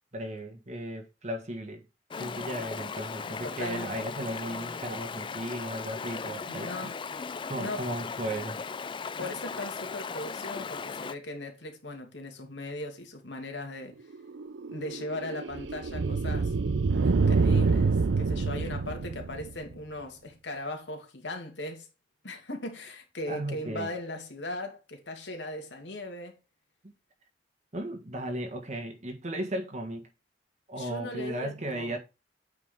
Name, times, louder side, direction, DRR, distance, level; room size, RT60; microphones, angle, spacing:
voice 1, 0.1-1.8 2.2-6.9 7.5-8.6 23.3-23.9 26.8-26.9 27.7-30.1 30.7-32.0, right 1 dB, 40° right, 1.4 m, -35 dB
Stream, 2.1-11.1, left 5 dB, 30° left, 0.4 m, -37 dB
voice 2, 3.4-3.9 6.5-6.9 7.6-7.9 9.2-14.0 14.7-16.5 17.0-21.9 22.2-26.4 30.8-32.0, left 1 dB, 85° left, 2.4 m, -38 dB
sound 1, 14.1-19.7, right 4 dB, 85° right, 0.5 m, -27 dB
8.9 x 4.8 x 3.5 m
head